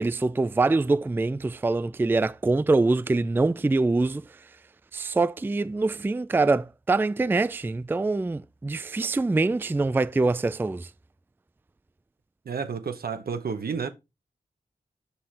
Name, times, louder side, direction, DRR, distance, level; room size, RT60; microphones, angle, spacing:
voice 1, 0.0-4.2 4.9-10.9, right 3 dB, 15° right, 0.3 m, -24 dB
voice 2, 12.4-13.9, right 6 dB, 75° right, 0.9 m, -31 dB
5.7 x 5.6 x 3.3 m
cardioid pair, 45°, 16 cm